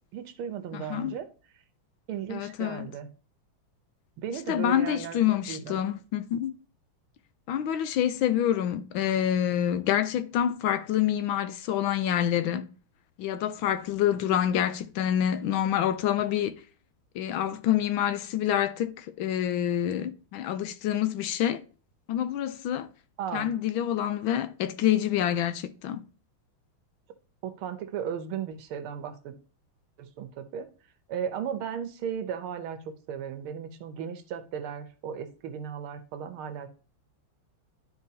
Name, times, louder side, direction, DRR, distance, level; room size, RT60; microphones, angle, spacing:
voice 1, 0.1-1.3 2.1-3.1 4.2-5.2 5.5-5.8 23.2-23.5 27.4-29.3 30.0-30.7 31.1-32.8 33.1-36.7, right 8 dB, 85° right, 1.7 m, -35 dB
voice 2, 0.7-1.1 2.3-2.9 4.5-6.5 7.5-12.7 13.2-16.6 17.1-21.6 22.1-22.9 23.3-26.0, left 10 dB, 80° left, 1.4 m, -27 dB
12.0 x 4.5 x 2.8 m
omnidirectional pair, 2.3 m